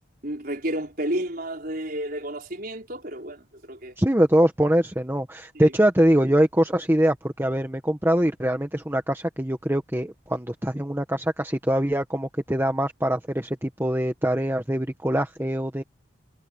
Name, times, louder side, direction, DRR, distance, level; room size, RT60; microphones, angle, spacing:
voice 1, 0.2-4.0 5.5-5.6, right 1 dB, 45° right, 5.4 m, -31 dB
voice 2, 4.0-15.8, equal, 10° right, 1.4 m, -23 dB
head